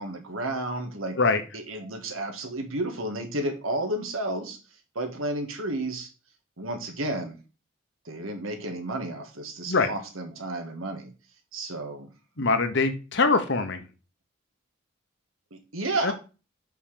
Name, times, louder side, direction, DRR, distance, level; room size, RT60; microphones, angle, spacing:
voice 1, 0.0-1.2 1.5-4.6 4.9-6.1 6.6-7.4 8.0-11.1 11.5-12.1 12.4-12.5 15.5-16.1, right 1 dB, 80° right, 5 dB, 1.8 m, -32 dB
voice 2, 12.4-13.8 16.0-16.1, left 4 dB, 60° left, 8 dB, 1.1 m, -23 dB
6.0 x 5.6 x 5.1 m, 0.33 s
head